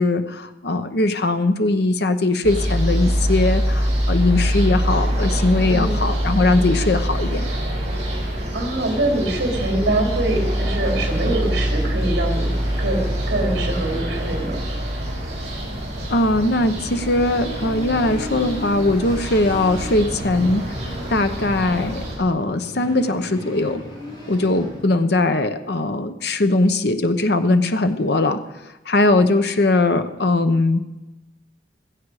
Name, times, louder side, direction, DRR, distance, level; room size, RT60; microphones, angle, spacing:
voice 1, 0.0-7.5 16.1-20.6 21.1-23.8 24.3-28.4 28.9-30.8, left 2 dB, 60° left, 9 dB, 0.9 m, -20 dB
sound 1, 2.4-22.2, equal, 40° right, 5.4 m, -24 dB
sound 2, 5.0-24.8, left 1 dB, 25° left, 7.5 m, -39 dB
voice 2, 8.5-12.5 12.8-13.0 13.3-14.6, right 1 dB, 65° right, 1 dB, 3.1 m, -24 dB
16.0 x 15.5 x 4.9 m, 1.0 s
head